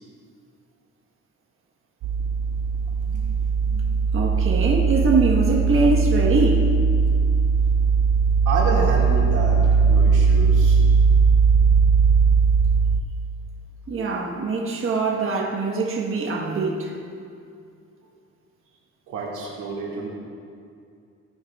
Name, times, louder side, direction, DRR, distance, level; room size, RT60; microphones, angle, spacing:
sound 1, 2.0-13.0, right 5 dB, 75° right, 0.5 m, -19 dB
voice 1, 3.1-3.4 3.6-6.7 13.9-17.0, right 3 dB, 45° right, -1 dB, 1.3 m, -23 dB
voice 2, 8.5-10.8 19.1-20.1, right 3 dB, 90° right, -3 dB, 2.2 m, -28 dB
16.0 x 9.3 x 2.4 m, 2.4 s
cardioid pair, 90°, 30 cm